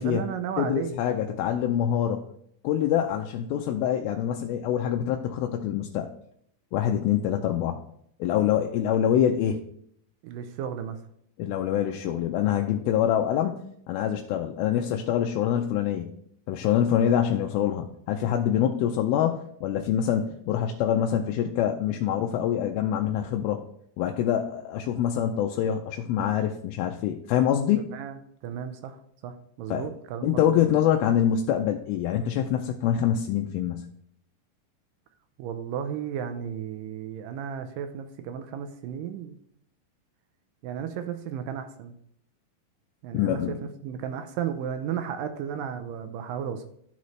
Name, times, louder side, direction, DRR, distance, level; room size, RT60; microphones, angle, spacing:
voice 1, 0.0-0.9 10.2-11.0 27.9-30.6 35.4-39.4 40.6-41.9 43.0-46.7, right 8 dB, 80° right, 8 dB, 2.1 m, -34 dB
voice 2, 0.6-2.2 2.6-6.1 6.7-7.8 8.2-9.6 11.4-13.6 13.9-16.1 16.5-23.6 24.0-27.8 29.7-29.9 30.2-33.9 43.1-43.5, left 10 dB, 85° left, 3 dB, 2.4 m, -25 dB
12.5 x 4.2 x 3.1 m, 0.68 s
omnidirectional pair, 4.3 m